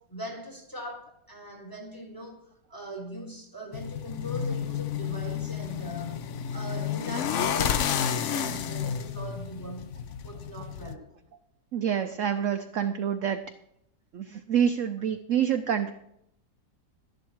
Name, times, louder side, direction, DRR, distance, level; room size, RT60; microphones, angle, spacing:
voice 1, 0.1-11.1, right 1 dB, 10° left, 1.6 m, -41 dB
sound 1, 3.7-10.9, left 8 dB, 60° left, 0.8 m, -31 dB
voice 2, 11.7-13.4 14.1-15.9, right 8 dB, 65° right, 0.8 m, -27 dB
12.5 x 10.5 x 4.6 m
omnidirectional pair, 1.9 m